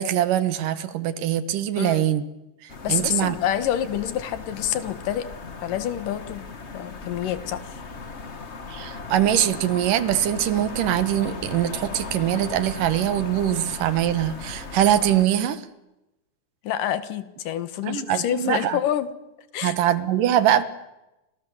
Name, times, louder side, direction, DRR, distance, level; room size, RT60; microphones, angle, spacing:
voice 1, 0.0-2.2 2.6-3.4 8.7-15.6 17.8-18.8 19.6-20.6, right 11 dB, 85° right, 13 dB, 3.0 m, -23 dB
voice 2, 1.8-2.1 2.8-5.3 5.6-6.5 6.7-7.6 16.6-19.1 19.5-19.7, left 11 dB, 85° left, 13 dB, 3.1 m, -27 dB
sound 1, 2.7-15.2, left 4 dB, 40° left, 0.9 m, -37 dB
29.5 x 26.5 x 7.3 m, 0.97 s
omnidirectional pair, 3.7 m